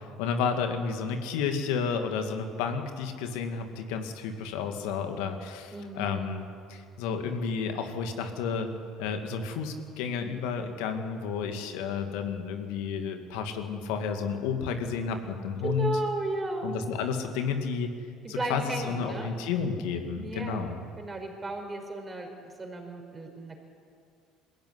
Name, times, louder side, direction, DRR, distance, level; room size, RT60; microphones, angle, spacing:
voice 1, 0.2-8.7 9.0-16.0 16.6-17.9 18.3-20.8, left 6 dB, 75° left, 6 dB, 2.3 m, -31 dB
voice 2, 5.7-6.3 15.6-16.7 18.2-19.3 20.2-20.6 21.0-23.6, right 2 dB, 25° right, 3 dB, 5.5 m, -34 dB
21.0 x 15.5 x 9.7 m, 2.3 s
hypercardioid pair, 70°, 0 cm